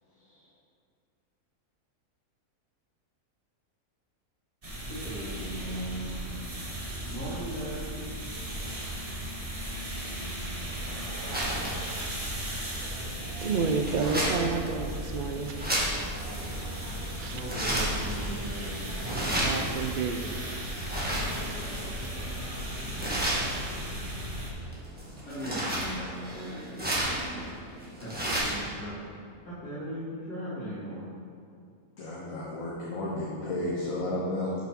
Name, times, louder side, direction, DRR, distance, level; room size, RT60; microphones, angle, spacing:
sound 1, 4.6-24.5, equal, 25° right, 1.1 m, -36 dB
voice 1, 4.9-6.2 7.1-7.8 17.3-18.8 25.3-27.0 28.0-29.0 29.4-31.0, right 1 dB, 90° left, -13 dB, 3.1 m, -37 dB
sound 2, 10.6-28.7, right 1 dB, 5° right, 1.6 m, -34 dB
voice 2, 13.4-16.1 17.2-17.8 19.4-20.4, right 4 dB, 85° right, 5 dB, 0.4 m, -31 dB
voice 3, 32.0-34.5, left 1 dB, 60° left, -6 dB, 1.6 m, -32 dB
12.0 x 6.0 x 3.7 m, 2.2 s
omnidirectional pair, 1.7 m